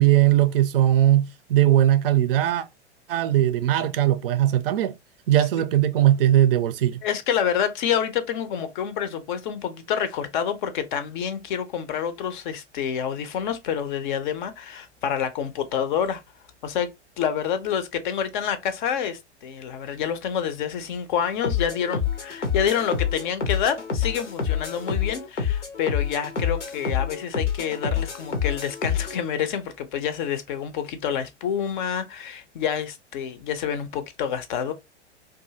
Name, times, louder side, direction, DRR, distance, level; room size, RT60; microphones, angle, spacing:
voice 1, 0.0-2.7 3.1-5.0 5.3-7.0, right 12 dB, 55° right, 0.4 m, -19 dB
voice 2, 7.0-16.2 16.6-34.7, left 8 dB, 45° left, 0.5 m, -28 dB
sound 1, 21.4-29.2, left 7 dB, 85° left, 0.8 m, -27 dB
2.6 x 2.4 x 2.6 m
figure-of-eight pair, 95°, 35 cm